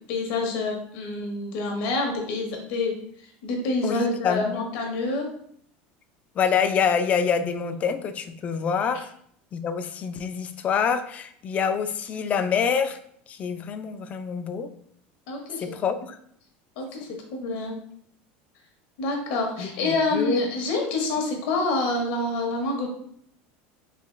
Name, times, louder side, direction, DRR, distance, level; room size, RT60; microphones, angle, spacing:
voice 1, 0.1-5.3 15.3-15.6 16.8-17.8 19.0-22.9, left 2 dB, 65° left, 1 dB, 1.2 m, -27 dB
voice 2, 3.8-4.6 6.4-9.1 9.5-13.0 13.3-14.7 15.6-16.2 19.6-20.4, left 6 dB, 30° left, 10 dB, 0.3 m, -26 dB
3.8 x 3.0 x 3.2 m, 0.66 s
supercardioid pair, 145°, 5 cm